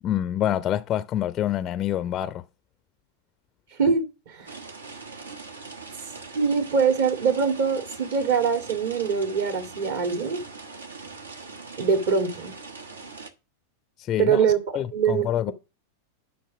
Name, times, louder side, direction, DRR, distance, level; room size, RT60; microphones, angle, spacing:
voice 1, 0.0-2.4 14.1-14.4 14.7-15.5, left 11 dB, 30° left, 0.4 m, -26 dB
voice 2, 3.8-4.5 6.4-10.4 11.8-12.5 14.2-15.5, right 6 dB, 55° right, 2.0 m, -23 dB
sound 1, 4.5-13.3, right 4 dB, 75° right, 1.2 m, -41 dB
9.2 x 5.9 x 5.1 m
figure-of-eight pair, 90°, 0 cm